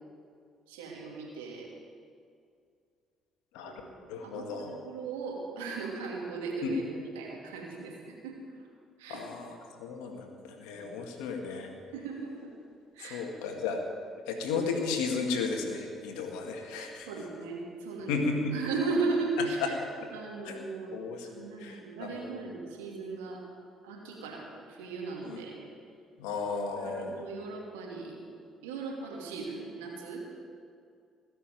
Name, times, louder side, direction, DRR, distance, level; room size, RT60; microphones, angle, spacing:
voice 1, 0.7-1.7 3.6-3.9 4.2-4.4 4.7-8.7 9.0-9.2 10.7-10.9 11.9-12.5 12.9-13.2 17.1-18.2 18.5-19.8 20.1-20.9 21.2-23.4 23.8-25.6 26.8-28.2 28.6-30.2, right 3 dB, 85° right, -2 dB, 2.8 m, -37 dB
voice 2, 4.1-4.8 6.6-6.7 9.1-11.7 13.0-13.8 14.3-17.1 18.1-18.5 19.6-19.7 20.4-20.6 20.9-22.3 25.3-25.4 26.2-27.1, left 4 dB, 80° left, 3 dB, 1.9 m, -34 dB
19.5 x 6.8 x 9.3 m, 2.3 s
hypercardioid pair, 55°, 0 cm